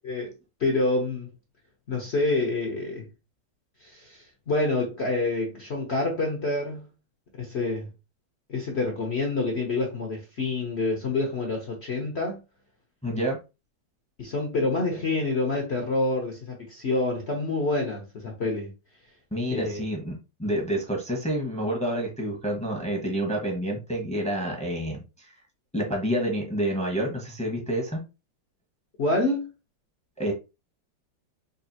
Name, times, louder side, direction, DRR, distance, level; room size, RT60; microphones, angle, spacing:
voice 1, 0.0-1.3 1.9-3.1 3.8-6.9 7.4-7.9 8.5-12.4 14.2-18.7 19.5-19.8 29.0-29.5, left 2 dB, 55° left, 0.7 m, -27 dB
voice 2, 13.0-13.4 19.3-20.1 20.4-25.3 25.7-28.0 30.2-30.3, right 1 dB, 5° left, 0.6 m, -28 dB
5.3 x 2.4 x 2.7 m
omnidirectional pair, 2.2 m